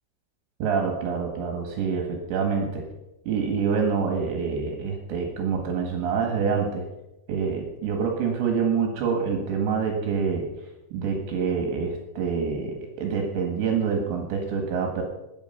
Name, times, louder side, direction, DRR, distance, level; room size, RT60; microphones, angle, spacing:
voice 1, 0.6-2.9 3.3-6.8 7.3-10.5 10.9-15.0, right 6 dB, 70° right, 2 dB, 4.0 m, -26 dB
21.5 x 8.5 x 5.7 m, 0.93 s
omnidirectional pair, 5.6 m